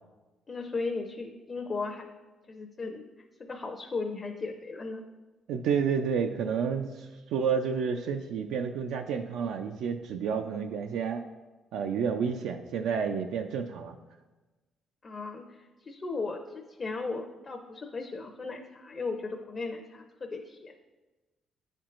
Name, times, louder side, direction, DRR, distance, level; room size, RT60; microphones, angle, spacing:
voice 1, 0.5-2.1 2.5-3.0 3.4-5.0 15.0-20.7, left 3 dB, 35° left, 3 dB, 0.5 m, -36 dB
voice 2, 5.5-11.2 11.7-13.9, right 6 dB, 90° right, 4 dB, 0.3 m, -30 dB
10.0 x 4.4 x 2.5 m, 1.2 s
cardioid pair, 90°, 0 cm